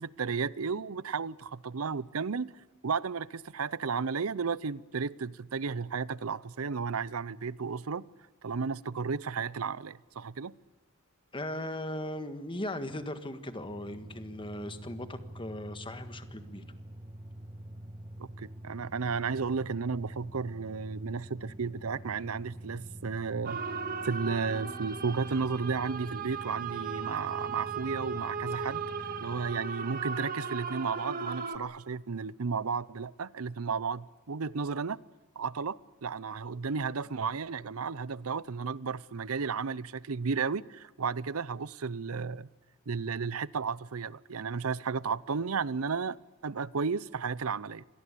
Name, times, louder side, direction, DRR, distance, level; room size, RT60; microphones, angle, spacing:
voice 1, 0.0-2.5 2.8-8.0 8.4-10.5 18.2-23.6 24.0-35.0 35.4-42.5 42.9-47.8, right 5 dB, 80° right, 0.7 m, -33 dB
voice 2, 11.3-16.6, left 1 dB, 25° left, 1.6 m, -38 dB
sound 1, 13.5-29.6, right 1 dB, 25° right, 1.4 m, -46 dB
sound 2, 23.5-31.6, right 6 dB, 45° right, 1.8 m, -37 dB
Bass guitar, 24.5-30.7, right 3 dB, 10° right, 1.5 m, -55 dB
26.0 x 19.0 x 8.4 m
head